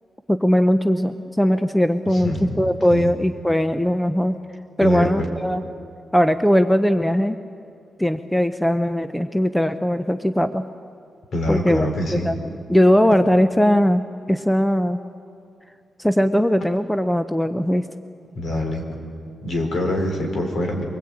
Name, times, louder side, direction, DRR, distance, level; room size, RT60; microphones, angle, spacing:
voice 1, 0.3-4.4 4.8-5.6 6.1-7.4 8.0-10.6 11.5-11.8 12.1-12.4 12.7-15.0 16.0-17.9, equal, 5° left, 10 dB, 0.7 m, -19 dB
voice 2, 2.1-2.6 2.9-3.1 4.8-5.3 11.3-12.3 18.3-18.8 19.4-20.8, left 1 dB, 60° left, 3 dB, 4.5 m, -24 dB
24.0 x 21.5 x 8.8 m, 2.5 s
wide cardioid pair, 125°, 0 cm